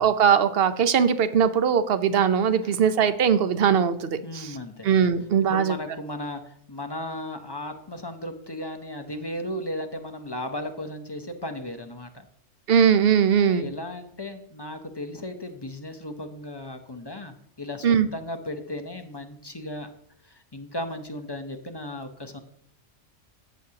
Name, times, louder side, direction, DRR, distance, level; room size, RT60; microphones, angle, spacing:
voice 1, 0.0-4.6 4.8-5.7 12.7-13.7 17.8-18.1, right 7 dB, 60° right, 11 dB, 0.8 m, -20 dB
voice 2, 4.2-4.9 5.5-12.2 13.3-19.9 20.2-22.4, left 1 dB, 25° left, 7 dB, 0.6 m, -35 dB
15.5 x 6.3 x 2.8 m, 0.67 s
omnidirectional pair, 1.3 m